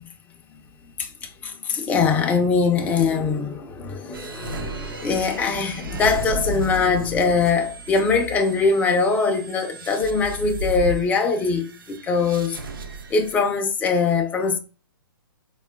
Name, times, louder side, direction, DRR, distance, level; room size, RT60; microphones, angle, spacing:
voice 1, 1.0-12.6 13.1-14.6, left 4 dB, 15° left, 0.4 m, -22 dB
sound 1, 4.1-13.4, right 2 dB, 70° right, 0.5 m, -34 dB
4.2 x 2.3 x 2.2 m
figure-of-eight pair, 120°, 12 cm